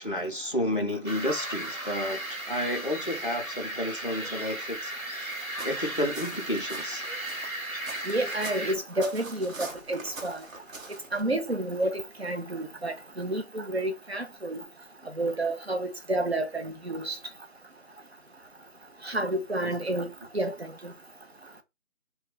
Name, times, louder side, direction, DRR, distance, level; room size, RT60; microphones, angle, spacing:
voice 1, 0.0-7.1 19.6-19.7, left 1 dB, 40° left, 0.5 m, -31 dB
sound 1, 1.1-8.8, right 1 dB, 85° right, 1.3 m, -35 dB
sound 2, 5.5-11.2, right 3 dB, 70° right, 0.9 m, -44 dB
voice 2, 8.1-10.4 11.1-14.6 15.2-17.2 19.0-20.1 20.3-20.9, right 1 dB, 50° right, 0.5 m, -30 dB
2.2 x 2.2 x 3.7 m
figure-of-eight pair, 175°, 41 cm